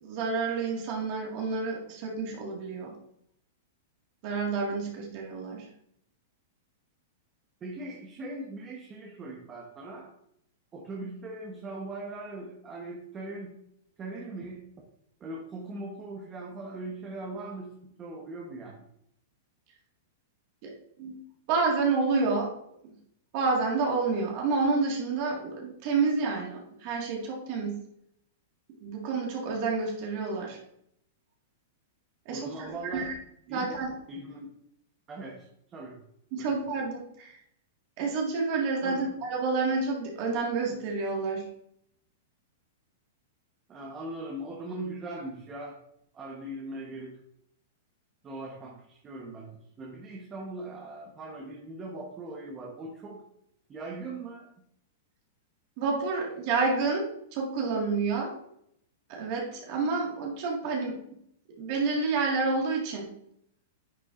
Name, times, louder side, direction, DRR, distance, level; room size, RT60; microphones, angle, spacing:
voice 1, 0.0-2.9 4.2-5.7 20.6-20.7 21.0-21.2 21.5-22.5 23.3-27.8 28.8-30.6 32.3-33.1 33.5-33.9 36.3-37.4 38.0-41.4 55.8-58.3 59.1-60.9 61.6-63.1, right 4 dB, 40° right, -1 dB, 1.8 m, -29 dB
voice 2, 7.6-10.1 10.7-13.6 14.0-14.6 15.2-18.8 32.3-33.1 33.5-33.7 34.1-34.5 35.1-36.0 36.4-36.5 38.8-39.2 43.7-45.8 46.1-47.1 48.2-53.2 53.7-54.5, right 2 dB, 15° right, -1 dB, 1.1 m, -40 dB
10.0 x 7.0 x 2.5 m, 0.73 s
supercardioid pair, 165°, 0 cm